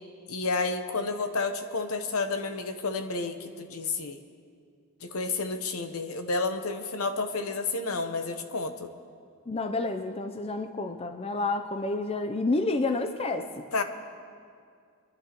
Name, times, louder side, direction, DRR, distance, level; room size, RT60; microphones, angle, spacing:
voice 1, 0.3-4.2 5.0-8.9 13.7-13.8, left 3 dB, 75° left, 8 dB, 0.9 m, -30 dB
voice 2, 9.5-13.6, left 2 dB, 25° left, 7 dB, 0.4 m, -29 dB
27.0 x 11.0 x 3.0 m, 2.3 s
head